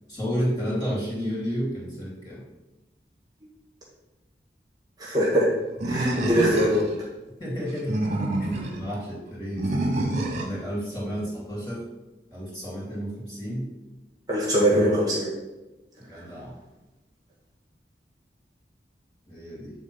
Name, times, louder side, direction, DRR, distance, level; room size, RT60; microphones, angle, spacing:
voice 1, 0.1-2.4 7.4-8.0 8.4-9.7 10.3-11.8 12.3-13.7 14.7-15.1 16.0-16.6 19.3-19.7, equal, 25° left, -6 dB, 2.9 m, -31 dB
voice 2, 5.0-5.5 5.8-6.8 14.3-15.3 16.1-16.3, equal, 20° right, -5 dB, 1.6 m, -22 dB
Animal, 5.8-7.0 7.7-8.8 9.6-10.6, right 1 dB, 40° right, 1.3 m, -27 dB
8.6 x 3.7 x 5.6 m, 1.1 s
head